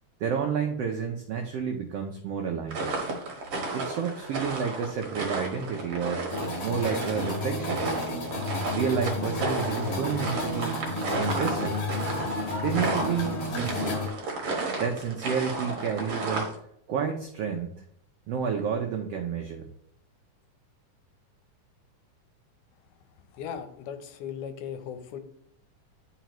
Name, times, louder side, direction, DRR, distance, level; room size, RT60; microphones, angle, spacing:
voice 1, 0.2-2.9 3.7-6.2 6.6-7.9 8.7-10.8 11.2-11.8 12.6-14.0 14.8-16.5 16.9-17.7 18.3-19.7, right 6 dB, 85° right, 2 dB, 1.4 m, -30 dB
sound 1, 2.7-16.6, right 3 dB, 55° right, 2.0 m, -33 dB
sound 2, 6.3-14.1, left 2 dB, 60° left, 2.4 m, -32 dB
voice 2, 23.3-25.2, left 8 dB, 80° left, 8 dB, 2.3 m, -37 dB
10.0 x 4.9 x 3.0 m, 0.71 s
omnidirectional pair, 3.6 m